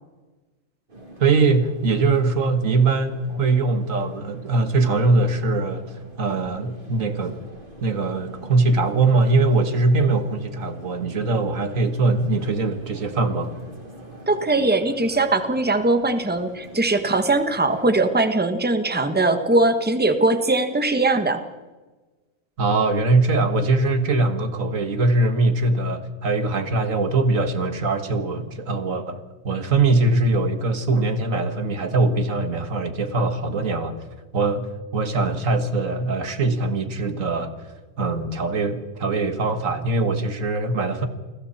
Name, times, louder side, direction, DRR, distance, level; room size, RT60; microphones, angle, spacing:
sound 1, 0.9-18.0, right 1 dB, 40° right, 3.3 m, -44 dB
voice 1, 1.2-5.9 6.2-7.4 7.8-13.5 22.6-29.2 29.4-34.0 34.3-37.5 38.0-41.1, right 3 dB, 80° right, 8 dB, 2.1 m, -22 dB
voice 2, 14.3-21.4, right 2 dB, 10° right, 8 dB, 1.3 m, -20 dB
29.5 x 21.0 x 4.3 m, 1.2 s
omnidirectional pair, 1.4 m